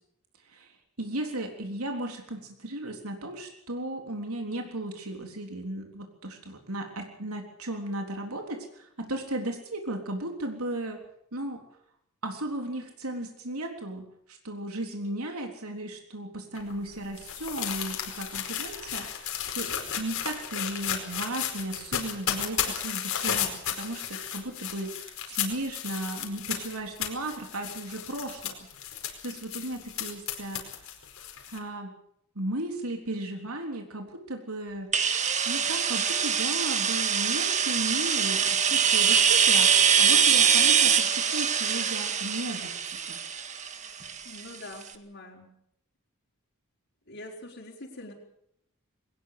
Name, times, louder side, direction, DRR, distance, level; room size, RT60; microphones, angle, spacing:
voice 1, 0.4-11.0 11.3-11.6 12.2-28.5 29.2-30.9 31.5-31.9 32.4-34.9 35.5-43.2, right 1 dB, 80° right, 3 dB, 3.7 m, -35 dB
sound 1, 16.5-31.6, left 9 dB, 75° left, 4.9 m, -34 dB
sound 2, 34.9-44.6, right 7 dB, 30° right, 1.8 m, -23 dB
voice 2, 44.2-45.5 47.1-48.1, left 1 dB, 55° left, -4 dB, 5.0 m, -44 dB
22.5 x 19.5 x 6.9 m, 0.72 s
head